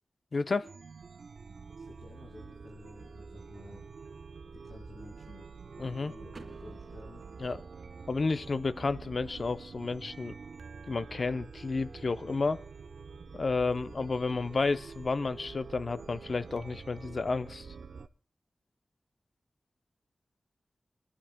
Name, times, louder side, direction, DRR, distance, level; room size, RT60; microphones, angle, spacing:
voice 1, 0.3-0.7 5.8-6.1 7.4-7.6 8.1-10.3 10.9-12.6 13.3-17.7, left 3 dB, 50° left, 0.6 m, -31 dB
Chime, 0.6-18.1, right 5 dB, 85° right, 0.7 m, -47 dB
voice 2, 1.8-3.8 4.5-5.5 6.0-7.2, left 2 dB, 80° left, 4.3 m, -52 dB
Car / Door, 6.3-8.2, right 3 dB, 55° right, 2.3 m, -55 dB
29.5 x 11.0 x 2.2 m
wide cardioid pair, 120°, 0 cm